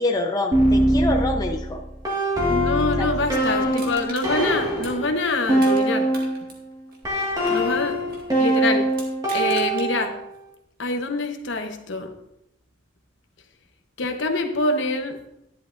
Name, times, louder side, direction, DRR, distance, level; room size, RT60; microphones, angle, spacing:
voice 1, 0.0-1.8 3.0-3.1 3.5-3.6, left 2 dB, 20° left, 2 dB, 0.7 m, -26 dB
sound 1, 0.5-6.5 7.0-10.3, right 1 dB, 20° right, 1.8 m, -22 dB
voice 2, 2.5-6.1 7.5-8.9 9.3-10.1 10.8-12.1 14.0-15.2, left 2 dB, 60° left, 5 dB, 1.0 m, -25 dB
Crushing, 3.7-5.8 6.1-8.3 8.9-9.9 10.3-10.4, right 2 dB, 45° right, 1.9 m, -41 dB
11.5 x 11.0 x 2.6 m, 0.85 s
head